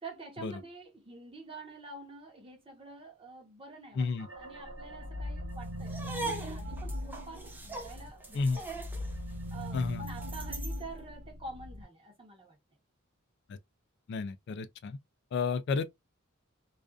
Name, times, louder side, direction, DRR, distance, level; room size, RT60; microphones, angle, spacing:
voice 1, 0.0-4.1 4.3-8.6 9.5-12.6, right 3 dB, 25° right, 0.8 m, -47 dB
voice 2, 3.9-4.3 8.3-8.6 9.7-10.0 13.5-13.6 14.1-15.0 15.3-15.8, left 4 dB, 55° left, 0.3 m, -31 dB
sound 1, 4.2-8.1 8.4-11.8, equal, 60° right, 0.6 m, -40 dB
sound 2, 5.8-10.8, right 2 dB, 10° right, 0.5 m, -41 dB
2.4 x 2.3 x 2.3 m
head